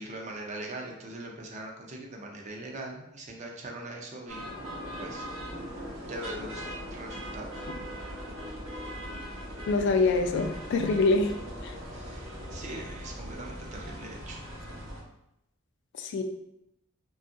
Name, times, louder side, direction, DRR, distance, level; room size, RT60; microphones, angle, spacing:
voice 1, 0.0-4.5 5.0-5.3 6.0-7.5 11.9-14.4, right 1 dB, 35° right, 0 dB, 0.4 m, -41 dB
sound 1, 4.3-15.0, equal, 80° right, 0.8 m, -40 dB
voice 2, 9.7-11.4 11.6-11.7 16.0-16.2, left 3 dB, 60° left, 6 dB, 0.3 m, -25 dB
2.7 x 2.3 x 2.5 m, 0.82 s
head